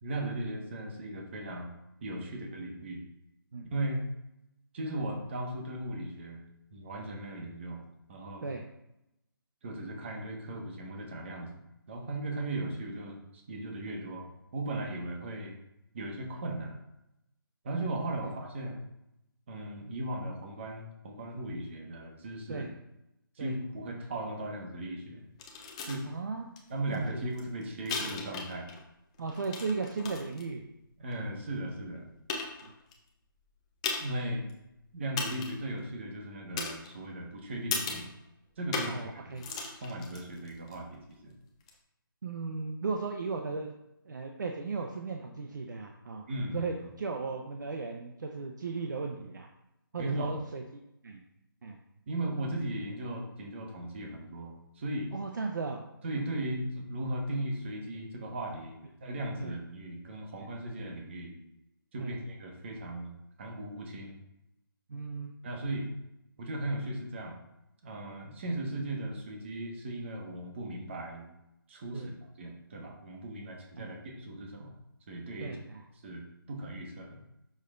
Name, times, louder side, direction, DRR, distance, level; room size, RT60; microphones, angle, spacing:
voice 1, 0.0-1.7 2.0-3.0 3.7-4.0 4.7-6.4 6.7-8.5 9.6-11.6 11.9-14.3 14.5-15.6 15.9-16.8 17.6-18.8 19.5-22.7 23.3-25.2 25.9-26.1 26.7-28.7 31.0-32.1 34.0-34.4 34.9-38.1 38.6-39.3 39.7-41.3 46.3-46.7 50.0-50.4 52.1-55.1 56.0-61.4 61.9-64.2 65.4-65.9 66.4-67.4 67.8-71.3 71.7-72.1 72.4-74.7 75.1-75.6 76.0-77.2, right 1 dB, 30° right, 0 dB, 1.6 m, -37 dB
sound 1, 25.4-26.0 26.6-26.7 26.9-28.8 29.1-30.4 31.1-31.2 31.8-31.9 32.3-32.9 33.8-34.2 34.5-34.6 35.2-35.7 36.6-37.2 37.7-38.1 38.7-39.1 39.3-40.8 41.6-41.7, left 4 dB, 15° left, 0.7 m, -36 dB
voice 2, 26.0-26.5 26.9-27.2 29.2-30.6 32.6-32.7 38.8-39.4 42.2-43.7 44.0-46.3 46.5-49.5 49.9-50.6 51.0-51.2 51.6-51.8 55.1-55.8 59.4-59.5 62.0-62.1 64.9-65.3 71.9-72.1 73.8-73.9 75.4-75.8, right 4 dB, 55° right, 2 dB, 0.9 m, -36 dB
8.3 x 6.6 x 2.6 m, 0.86 s
hypercardioid pair, 170°, 12 cm